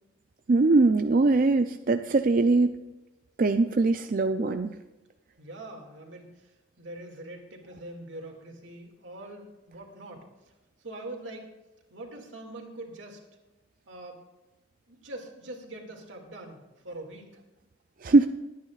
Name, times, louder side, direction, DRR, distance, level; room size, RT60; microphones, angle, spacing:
voice 1, 0.5-2.7 3.4-4.7 18.0-18.3, right 3 dB, 45° right, 8 dB, 0.4 m, -21 dB
voice 2, 5.4-10.5 10.8-11.5 11.9-13.2 13.9-14.2 14.9-17.3, right 1 dB, 85° right, 2 dB, 2.3 m, -43 dB
21.5 x 9.3 x 2.4 m, 1.1 s
head